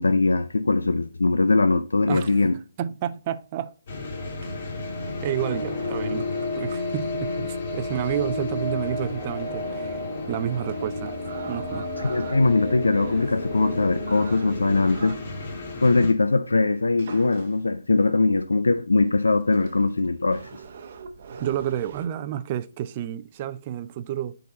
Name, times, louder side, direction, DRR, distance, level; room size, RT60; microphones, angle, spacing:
voice 1, 0.0-2.5 12.0-15.2 15.8-20.5, left 3 dB, 90° left, 0.5 m, -21 dB
voice 2, 2.1-2.4 2.8-3.7 5.2-6.3 6.6-10.0 10.3-11.1 11.4-11.9 21.4-24.4, right 11 dB, 35° right, 0.5 m, -30 dB
sound 1, 3.9-16.1, left 2 dB, 45° left, 2.1 m, -31 dB
sound 2, 4.4-4.8 5.3-5.6 5.8-16.0 17.0-17.8 18.5-18.6 19.0-19.1 19.5-22.1, right 5 dB, 50° right, 0.9 m, -42 dB
8.3 x 4.0 x 4.1 m
hypercardioid pair, 150°, 0 cm